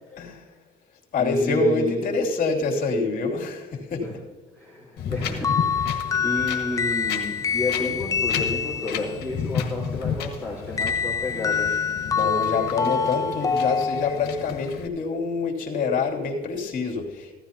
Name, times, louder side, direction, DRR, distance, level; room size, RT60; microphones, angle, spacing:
voice 1, 0.1-0.5 1.1-4.1 12.0-17.3, left 3 dB, 55° left, -1 dB, 3.0 m, -26 dB
voice 2, 1.2-2.0 4.0-4.1 4.5-12.0, left 2 dB, 10° right, -7 dB, 4.2 m, -31 dB
Wind, 5.0-14.9, left 7 dB, 75° left, 1.7 m, -33 dB
sound 1, 5.4-9.2 10.8-14.5, left 6 dB, 20° left, 0.3 m, -26 dB
16.0 x 13.0 x 2.9 m, 1.3 s
cardioid pair, 110°, 17 cm